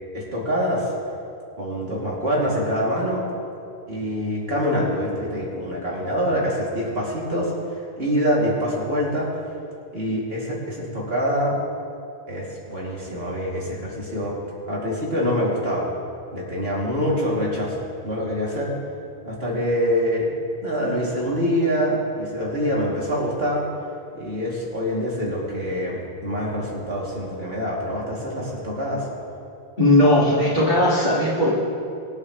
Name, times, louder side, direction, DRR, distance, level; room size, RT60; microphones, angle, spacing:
voice 1, 0.1-1.0 1.6-3.3 3.9-9.3 9.9-11.6 12.3-14.4 14.7-15.9 16.3-18.7 19.2-20.3 20.6-23.6 24.1-29.1, equal, 70° right, -5 dB, 3.0 m, -25 dB
voice 2, 29.8-31.5, left 1 dB, 45° left, -11 dB, 2.1 m, -17 dB
24.5 x 8.3 x 3.1 m, 2.6 s
omnidirectional pair, 1.1 m